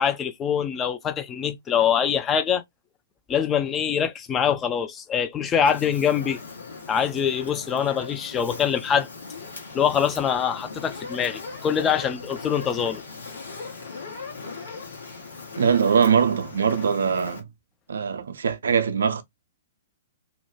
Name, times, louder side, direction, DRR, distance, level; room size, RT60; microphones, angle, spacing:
voice 1, 0.0-2.6 3.3-6.4 6.9-9.1 9.7-13.0, left 8 dB, 20° left, 0.3 m, -24 dB
Fire, 5.6-17.4, left 4 dB, 70° left, 1.0 m, -39 dB
voice 2, 15.6-17.5 17.9-19.2, right 6 dB, 65° right, 0.4 m, -22 dB
2.4 x 2.0 x 2.9 m
figure-of-eight pair, 110°, 0 cm